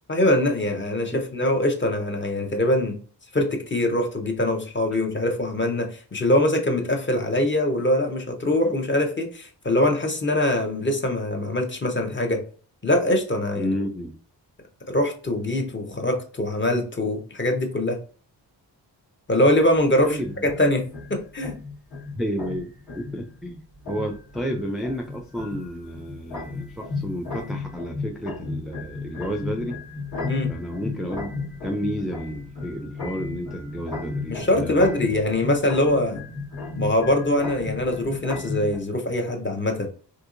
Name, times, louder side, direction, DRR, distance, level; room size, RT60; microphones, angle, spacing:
voice 1, 0.1-3.0 3.3-12.4 12.8-13.7 14.9-18.0 19.3-21.5 30.2-30.5 34.3-36.2 36.8-39.9, left 1 dB, 25° left, 4 dB, 0.8 m, -23 dB
voice 2, 13.5-14.1 20.0-20.3 22.2-29.8 30.5-31.3 31.6-35.0, equal, ahead, 2 dB, 0.4 m, -31 dB
sound 1, 19.6-38.8, left 4 dB, 55° left, 1.5 m, -34 dB
3.7 x 2.7 x 2.5 m, 0.40 s
cardioid pair, 70°, 43 cm